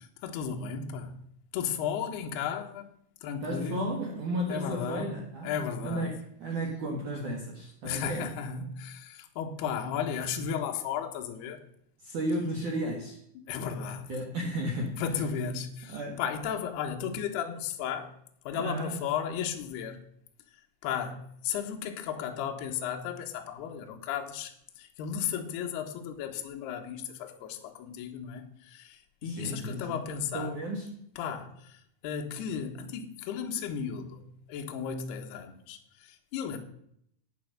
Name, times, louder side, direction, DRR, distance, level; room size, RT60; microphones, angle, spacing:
voice 1, 0.2-1.1 1.5-2.9 3.2-4.0 4.5-5.1 5.4-6.1 7.8-11.6 13.5-14.1 15.0-18.1 18.4-20.0 20.8-30.5 31.2-36.6, left 7 dB, 70° left, 2.9 m, -34 dB
voice 2, 3.4-8.3 12.0-13.2 14.1-15.0 15.9-16.2 18.5-19.0 29.2-30.0 30.3-31.0, right 1 dB, 60° right, 2.3 m, -34 dB
11.5 x 8.7 x 6.6 m
omnidirectional pair, 5.6 m